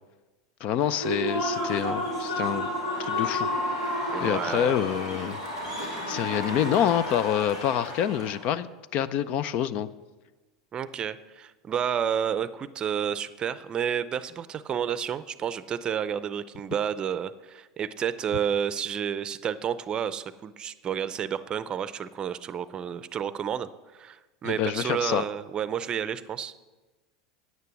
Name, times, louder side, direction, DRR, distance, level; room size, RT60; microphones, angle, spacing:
voice 1, 0.6-2.7 3.0-3.5 4.2-5.4 5.8-8.7 8.9-9.9 24.4-25.2, left 10 dB, 50° left, 16 dB, 0.5 m, -27 dB
Human voice / Cheering / Applause, 0.8-8.4, left 1 dB, 85° left, 2.8 m, -31 dB
voice 2, 4.1-4.7 10.7-26.5, right 8 dB, 35° right, 15 dB, 0.5 m, -30 dB
9.4 x 9.3 x 6.1 m, 1.2 s
hypercardioid pair, 85°, 3 cm